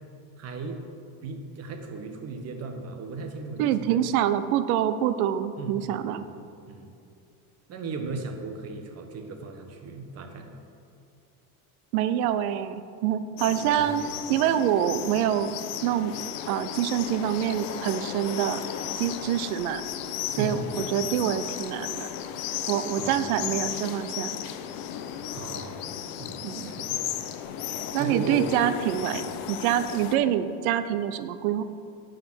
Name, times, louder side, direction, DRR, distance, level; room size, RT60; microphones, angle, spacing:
voice 1, 0.4-0.8 1.2-4.0 5.6-6.3 6.7-7.0 7.7-10.5 13.6-13.9 20.4-21.2 23.0-23.4 25.3-25.8 26.2-27.0 27.9-28.5 29.2-29.3, right 4 dB, 35° right, 5 dB, 1.2 m, -36 dB
voice 2, 3.6-6.3 11.9-14.0 14.3-15.5 15.8-16.1 16.5-18.6 19.0-19.8 20.4-22.1 22.7-24.4 26.4-26.7 27.9-31.6, right 10 dB, 90° right, 12 dB, 0.7 m, -26 dB
sound 1, 13.4-30.2, left 10 dB, 75° left, 0.8 m, -35 dB
11.5 x 5.1 x 6.2 m, 2.5 s
cardioid pair, 135°, 42 cm